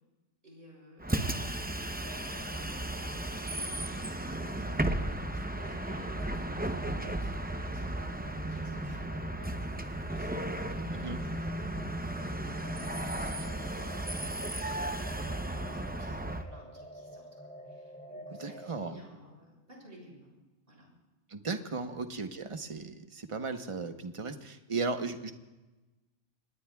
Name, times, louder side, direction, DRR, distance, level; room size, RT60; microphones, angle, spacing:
voice 1, 0.4-4.2 4.5-11.4 11.7-20.3 20.7-20.9 21.8-22.0, equal, 50° right, -2 dB, 6.7 m, -56 dB
Bus, 1.0-16.4, right 1 dB, 10° right, 0.6 m, -35 dB
sound 1, 2.0-18.7, equal, 10° left, 1.5 m, -50 dB
voice 2, 18.4-19.0 21.3-25.3, right 4 dB, 30° right, 7 dB, 1.0 m, -36 dB
26.0 x 20.0 x 2.4 m, 1.1 s
omnidirectional pair, 1.2 m